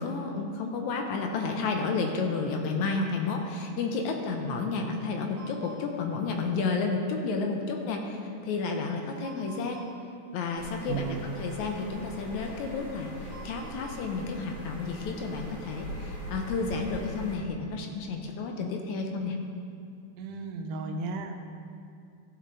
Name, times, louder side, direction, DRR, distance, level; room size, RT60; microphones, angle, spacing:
voice 1, 0.0-9.8 10.3-19.4, left 4 dB, 75° left, 3 dB, 2.0 m, -31 dB
sound 1, 5.4-5.8 8.9-9.9 11.5-11.6 13.0-14.0 14.5-14.6 14.8-15.0, right 5 dB, 65° right, 2.0 m, -49 dB
sound 2, 10.6-17.4, equal, 60° left, 3.6 m, -41 dB
voice 2, 10.9-11.3 20.2-21.4, right 4 dB, 90° right, 5 dB, 2.2 m, -34 dB
14.0 x 6.5 x 3.9 m, 2.5 s
omnidirectional pair, 3.6 m